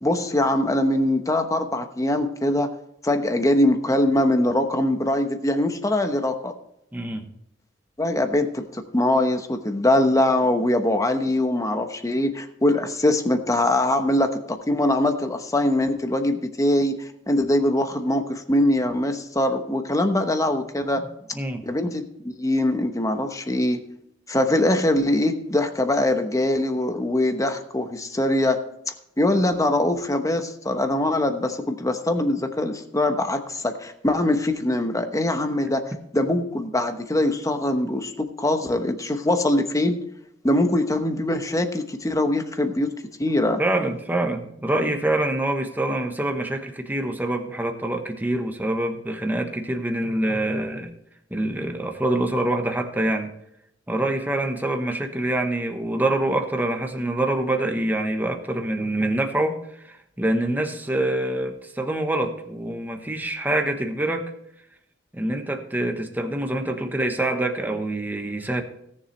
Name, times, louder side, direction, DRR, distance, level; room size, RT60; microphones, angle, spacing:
voice 1, 0.0-2.7 3.0-6.5 8.0-16.9 17.3-21.0 21.6-23.8 24.3-28.6 29.2-35.8 36.1-40.0 40.4-42.9 43.2-43.6, left 1 dB, 20° left, 7 dB, 1.0 m, -22 dB
voice 2, 6.9-7.2 21.0-21.1 21.3-21.6 43.6-50.9 51.3-53.3 53.9-64.3 65.1-68.6, right 1 dB, 10° right, 4 dB, 1.2 m, -25 dB
17.5 x 7.0 x 3.3 m, 0.77 s
head